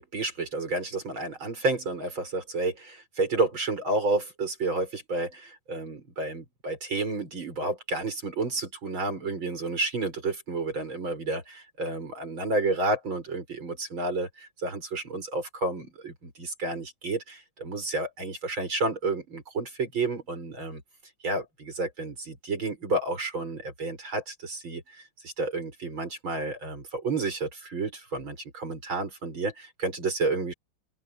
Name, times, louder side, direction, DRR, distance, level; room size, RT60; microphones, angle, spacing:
voice 1, 0.0-20.8 21.2-30.5, right 3 dB, 70° right, 7.1 m, -31 dB
open air
omnidirectional pair, 2.3 m